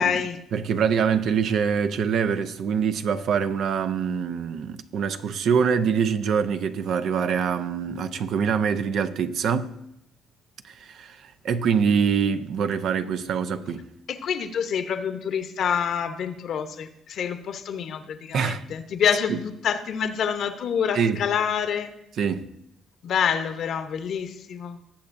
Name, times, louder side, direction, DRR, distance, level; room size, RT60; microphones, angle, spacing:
voice 1, 0.0-0.4 14.1-21.9 23.0-24.8, left 7 dB, 65° left, 0.9 m, -27 dB
voice 2, 0.5-9.8 10.6-13.8 18.3-18.6 19.3-19.4 20.9-21.2 22.2-22.5, right 6 dB, 70° right, 0.6 m, -24 dB
18.5 x 7.2 x 2.6 m
supercardioid pair, 75°, 0 cm